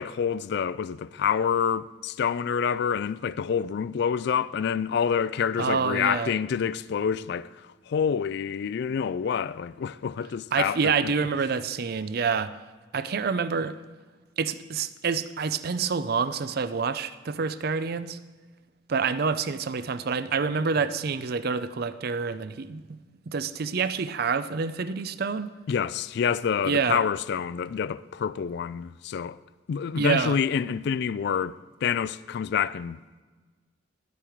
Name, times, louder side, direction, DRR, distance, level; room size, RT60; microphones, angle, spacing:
voice 1, 0.0-11.1 25.7-29.4 29.7-31.6 31.8-33.0, left 7 dB, 60° left, 0.3 m, -27 dB
voice 2, 5.6-6.3 10.5-12.5 12.9-13.8 14.4-18.2 18.9-23.0 23.3-25.5 26.7-27.0 30.0-30.4, right 5 dB, 55° right, 0.5 m, -27 dB
11.5 x 8.3 x 4.5 m
head